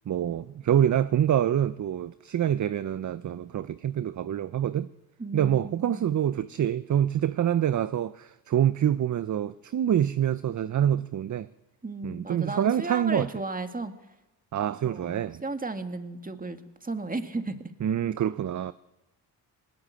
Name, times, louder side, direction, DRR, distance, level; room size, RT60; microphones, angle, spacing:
voice 1, 0.1-4.9 5.3-11.5 12.0-13.3 14.5-15.4 17.8-18.7, right 10 dB, 45° right, 0.7 m, -26 dB
voice 2, 5.2-6.1 11.8-13.9 14.8-17.7, right 3 dB, 20° right, 2.0 m, -35 dB
19.5 x 19.5 x 8.4 m
cardioid pair, 70°, 42 cm